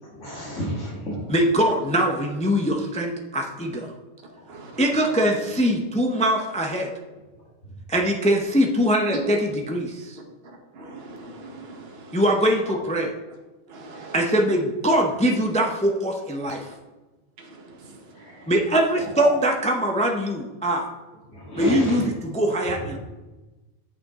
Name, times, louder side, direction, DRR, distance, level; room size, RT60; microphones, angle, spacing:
voice 1, 0.1-1.2 7.6-7.7 18.2-18.4 19.0-19.3 21.3-22.0 22.8-22.9, equal, 65° left, -7 dB, 2.3 m, -31 dB
voice 2, 1.3-3.9 4.8-6.9 7.9-10.2 12.1-13.1 14.1-16.7 18.5-20.9 21.6-23.0, equal, 10° left, 3 dB, 0.4 m, -22 dB
voice 3, 4.5-4.8 10.7-12.2 13.7-14.1 16.4-16.7 17.4-18.2, right 2 dB, 55° right, 1 dB, 1.3 m, -43 dB
8.4 x 6.8 x 3.6 m, 1.2 s
omnidirectional pair, 1.3 m